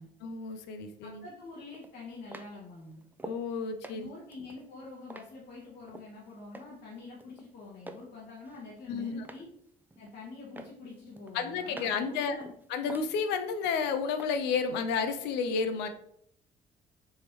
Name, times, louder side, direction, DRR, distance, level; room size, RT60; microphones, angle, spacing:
voice 1, 0.2-1.2 3.2-4.1 8.9-9.2 11.3-12.4 12.7-15.9, left 5 dB, 85° left, 8 dB, 0.4 m, -31 dB
sound 1, 0.7-0.8 1.7-3.5 3.8-6.1 6.5-6.9 7.2-8.1 8.4-9.5 9.9-10.3 10.6-12.1 12.4-13.8 14.2-14.3, right 2 dB, 10° right, 0.3 m, -47 dB
voice 2, 1.0-3.0 3.8-9.5 10.0-12.5, left 3 dB, 70° left, -5 dB, 1.0 m, -46 dB
3.5 x 2.9 x 3.1 m, 0.69 s
supercardioid pair, 70°, 17 cm